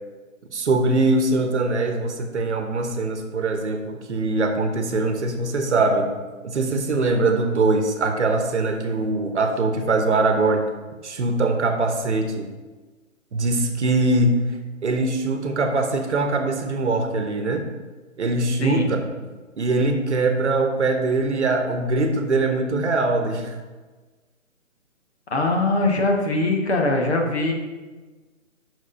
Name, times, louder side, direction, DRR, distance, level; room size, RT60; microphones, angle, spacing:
voice 1, 0.5-6.1 6.4-10.6 11.0-12.5 13.3-14.4 14.8-17.7 18.2-19.0 19.6-23.5, right 2 dB, 55° right, 5 dB, 1.0 m, -22 dB
voice 2, 18.6-18.9 25.3-27.5, left 2 dB, 50° left, 1 dB, 1.3 m, -21 dB
6.0 x 4.9 x 5.4 m, 1.3 s
hypercardioid pair, 160°, 40 cm